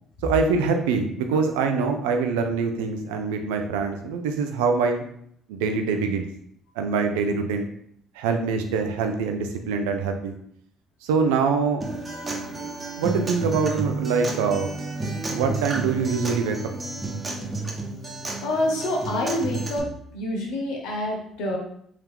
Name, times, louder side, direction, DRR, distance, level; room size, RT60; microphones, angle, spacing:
voice 1, 0.2-5.0 5.5-6.3 6.8-7.7 8.2-10.3 11.0-11.8 13.0-14.7 15.3-16.7, right 5 dB, 85° right, 5 dB, 0.5 m, -24 dB
Acoustic guitar, 11.8-19.8, right 3 dB, 30° right, 1.0 m, -31 dB
voice 2, 18.4-21.6, left 1 dB, 75° left, 1 dB, 0.9 m, -27 dB
3.6 x 2.8 x 3.6 m, 0.68 s
hypercardioid pair, 60°, 0 cm